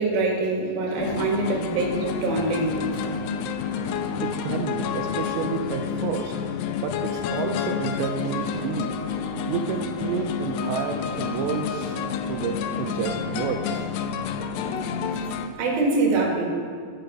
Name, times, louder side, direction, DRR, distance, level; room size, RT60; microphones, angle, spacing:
voice 1, 0.0-2.8 15.6-16.4, right 3 dB, 60° right, 0 dB, 3.6 m, -24 dB
sound 1, 1.0-15.5, left 6 dB, 80° left, 2.7 m, -29 dB
voice 2, 4.2-6.4 6.8-9.0 9.5-12.0 12.3-13.9, right 7 dB, 85° right, 4 dB, 2.9 m, -30 dB
11.5 x 8.1 x 6.7 m, 2.1 s
omnidirectional pair, 5.1 m